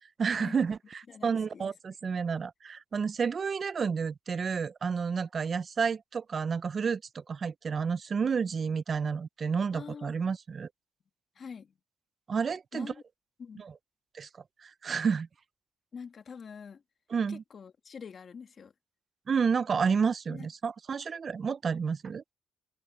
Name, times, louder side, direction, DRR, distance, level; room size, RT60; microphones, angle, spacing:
voice 1, 0.2-10.7 12.3-12.9 13.6-13.7 14.1-14.3 14.6-15.3 17.1-17.4 19.3-22.2, right 6 dB, 45° right, 0.5 m, -30 dB
voice 2, 1.1-1.7 9.7-10.1 11.4-11.7 12.7-13.0 13.4-13.7 15.9-16.8 17.3-18.7 20.3-20.5, left 6 dB, 50° left, 1.8 m, -45 dB
cardioid pair, 80°, 0 cm